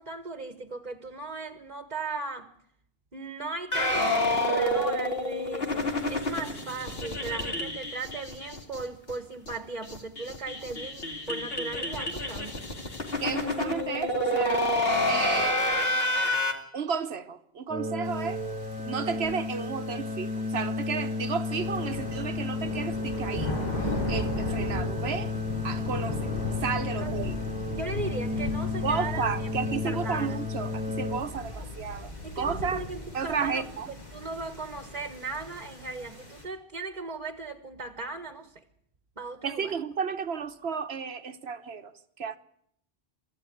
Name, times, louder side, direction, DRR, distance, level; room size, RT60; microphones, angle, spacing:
voice 1, 0.0-2.5 3.1-12.6 26.9-27.3 27.8-30.4 31.6-31.7 32.2-38.6 39.2-39.7, right 3 dB, 45° right, 1.5 m, -37 dB
sound 1, 3.7-8.8 9.1-9.2 9.5-9.6 9.8-16.5, left 1 dB, 70° left, 2.9 m, -28 dB
voice 2, 13.2-14.7 15.1-15.6 16.7-18.4 18.8-25.3 25.6-26.3 26.6-27.3 28.8-32.1 32.4-32.8 33.1-33.9 39.4-42.4, right 6 dB, 90° right, 1.4 m, -33 dB
sound 2, 17.7-31.2, left 3 dB, 5° right, 1.4 m, -33 dB
sound 3, 18.0-36.4, left 1 dB, 45° left, 6.7 m, -37 dB
24.5 x 14.0 x 9.9 m
omnidirectional pair, 1.0 m